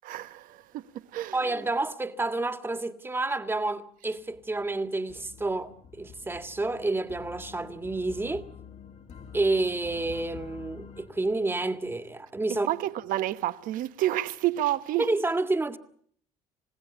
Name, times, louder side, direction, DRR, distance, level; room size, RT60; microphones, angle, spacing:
voice 1, 0.0-1.4 12.7-15.1, right 14 dB, 70° right, 1.3 m, -29 dB
voice 2, 1.3-8.5 9.3-12.7 15.0-15.8, right 2 dB, 15° right, 1.9 m, -29 dB
sound 1, 4.2-11.9, left 7 dB, 50° left, 2.2 m, -48 dB
29.5 x 16.0 x 8.3 m
supercardioid pair, 90°, 15 cm